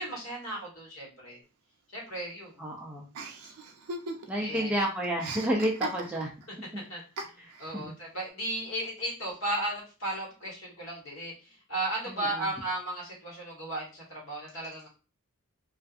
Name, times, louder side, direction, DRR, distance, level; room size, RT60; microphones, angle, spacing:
voice 1, 0.0-1.4 1.9-2.6 4.4-4.7 6.9-7.0 7.3-14.9, right 1 dB, 60° left, -3 dB, 1.3 m, -35 dB
voice 2, 2.6-3.1 4.3-6.3 7.7-7.9 12.1-12.5, equal, 5° right, -3 dB, 0.3 m, -30 dB
Chuckle chortle, 3.1-4.5 4.8-6.4 7.2-7.7, right 3 dB, 85° right, 0.5 m, -39 dB
2.5 x 2.4 x 2.4 m, 0.33 s
head